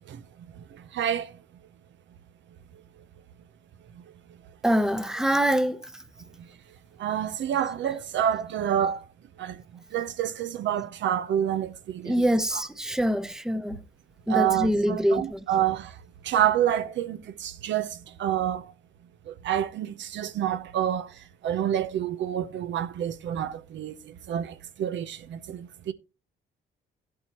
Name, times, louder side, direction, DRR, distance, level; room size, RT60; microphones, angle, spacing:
voice 1, 0.7-1.3 7.0-9.0 9.4-9.6 9.9-12.3 12.5-12.6 14.3-15.9 16.2-18.7 19.3-21.1 21.4-25.9, right 10 dB, 70° right, 0.8 m, -28 dB
voice 2, 4.6-5.8 12.1-13.8 14.3-15.4, equal, 5° right, 0.8 m, -24 dB
14.0 x 8.0 x 3.0 m
cardioid pair, 90°, 20 cm